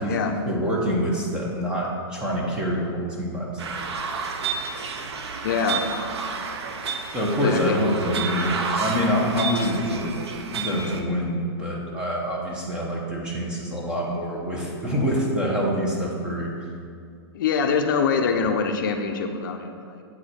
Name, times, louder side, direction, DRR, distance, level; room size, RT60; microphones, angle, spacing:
voice 1, 0.0-3.8 7.1-10.2 10.5-16.5, equal, 5° right, -3 dB, 0.6 m, -26 dB
sound 1, 3.6-11.0, right 5 dB, 85° right, 0.7 m, -30 dB
voice 2, 5.4-5.9 7.3-7.8 17.3-20.0, left 5 dB, 50° left, 5 dB, 0.5 m, -24 dB
7.8 x 4.8 x 4.3 m, 2.4 s
hypercardioid pair, 170°, 14 cm